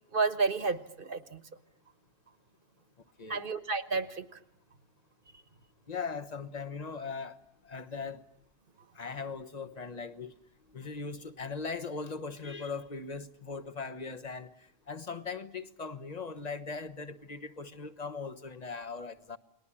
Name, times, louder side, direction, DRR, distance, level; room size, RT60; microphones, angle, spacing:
voice 1, 0.1-1.4 3.3-4.4, right 4 dB, 55° right, 1.5 m, -31 dB
voice 2, 3.2-3.5 5.9-7.4 7.6-8.2 8.9-10.3 10.7-14.5 14.9-19.4, left 4 dB, 40° left, 1.3 m, -39 dB
30.0 x 20.0 x 9.9 m
omnidirectional pair, 1.1 m